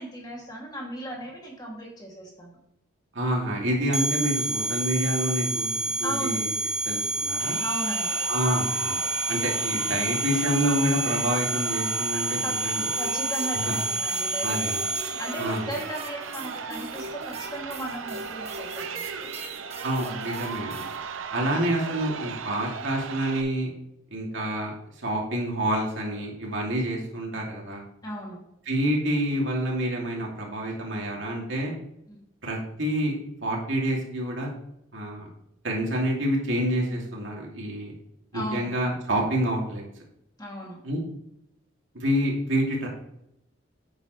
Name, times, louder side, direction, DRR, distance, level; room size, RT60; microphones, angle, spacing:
voice 1, 0.0-2.6 6.0-6.4 7.6-8.2 12.4-12.5 12.9-14.7 15.0-19.1 28.0-28.4 32.1-32.2 38.3-38.7 40.4-40.8, right 1 dB, 20° left, -2 dB, 2.5 m, -36 dB
voice 2, 3.1-6.5 6.8-7.6 8.3-9.0 9.3-12.9 13.5-13.8 14.4-14.8 15.4-15.7 19.8-20.9 21.3-23.7 24.1-27.8 28.7-31.7 32.4-33.2 33.4-34.5 34.9-35.3 35.6-37.9 38.3-39.8 40.8-41.0 41.9-42.9, equal, 70° right, -2 dB, 2.6 m, -28 dB
sound 1, 3.9-15.3, right 1 dB, 5° right, 0.4 m, -29 dB
Crowd, 7.3-23.4, right 6 dB, 85° right, 0.7 m, -36 dB
sound 2, 13.0-21.0, right 2 dB, 35° right, 1.4 m, -41 dB
10.5 x 8.2 x 3.2 m, 0.80 s
head